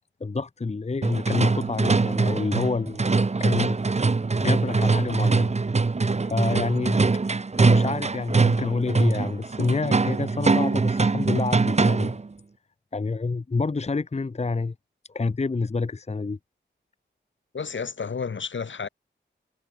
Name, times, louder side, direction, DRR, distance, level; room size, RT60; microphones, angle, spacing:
voice 1, 0.2-3.0 3.4-3.8 4.4-5.5 6.3-7.0 7.6-12.2 12.9-14.7 15.1-16.4, left 3 dB, 35° left, 1.0 m, -28 dB
sound 1, 1.0-12.3, right 3 dB, 35° right, 1.1 m, -23 dB
voice 2, 17.5-18.9, left 5 dB, 70° left, 4.8 m, -31 dB
cardioid pair, 60°, 20 cm